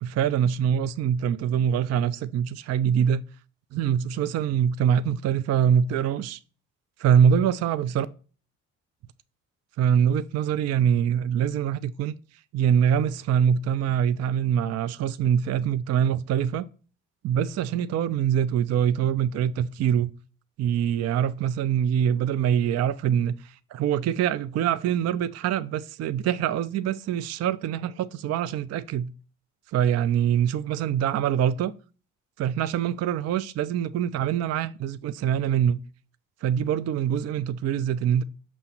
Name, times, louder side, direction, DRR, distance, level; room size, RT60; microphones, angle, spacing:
voice 1, 0.0-3.2 3.7-6.4 7.0-8.1 9.8-12.1 12.5-16.6 17.2-20.1 20.6-29.1 29.7-31.7 32.4-35.8 36.4-38.2, right 9 dB, 40° right, 0.4 m, -24 dB
6.8 x 3.0 x 5.9 m
hypercardioid pair, 40°, 40 cm